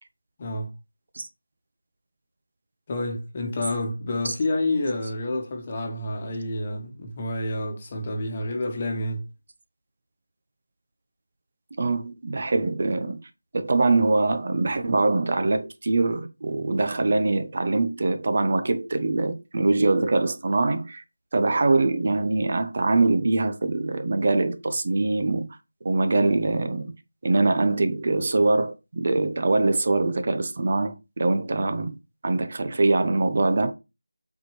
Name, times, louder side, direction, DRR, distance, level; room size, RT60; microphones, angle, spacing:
voice 1, 2.9-9.2, left 1 dB, 25° left, 1.3 m, -29 dB
voice 2, 11.7-13.2 13.5-21.0 21.3-25.5 25.8-27.0 27.2-31.9 32.2-33.7, right 2 dB, 40° right, 0.9 m, -23 dB
7.5 x 4.4 x 3.2 m
figure-of-eight pair, 170°, 0 cm